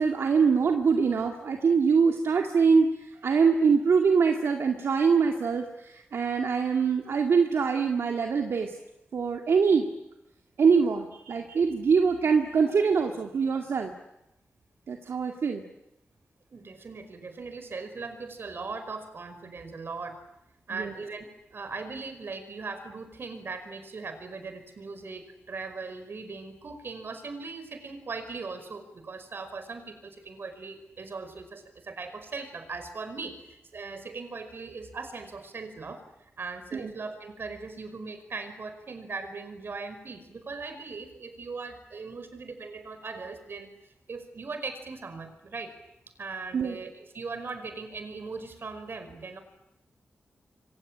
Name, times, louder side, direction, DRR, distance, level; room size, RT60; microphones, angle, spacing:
voice 1, 0.0-8.8 9.1-9.9 10.6-13.9 14.9-15.6 20.7-20.9 36.7-36.9 46.5-46.8, right 5 dB, 80° right, 2 dB, 2.3 m, -24 dB
voice 2, 16.5-20.2 20.7-36.0 36.4-45.7 46.2-49.4, right 4 dB, 60° right, 9 dB, 5.1 m, -39 dB
27.0 x 24.5 x 8.8 m, 0.88 s
wide cardioid pair, 80°, 4 cm